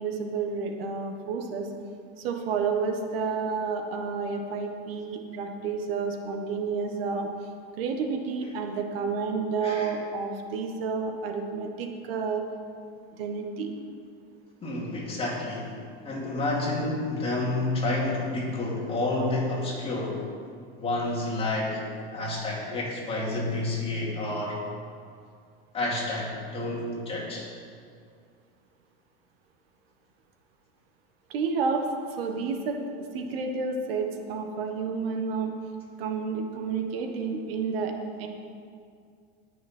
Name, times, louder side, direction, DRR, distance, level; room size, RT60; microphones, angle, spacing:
voice 1, 0.0-1.7 2.2-7.3 7.8-12.4 13.1-13.7 31.3-31.8 32.2-35.5 36.0-37.9 38.2-38.3, right 5 dB, 80° right, 4 dB, 1.4 m, -30 dB
voice 2, 9.6-9.9 14.6-15.7 16.0-20.2 20.8-21.8 22.1-24.6 25.7-27.5, left 2 dB, 20° left, -3 dB, 2.6 m, -29 dB
18.0 x 6.4 x 4.4 m, 2.2 s
supercardioid pair, 140°, 29 cm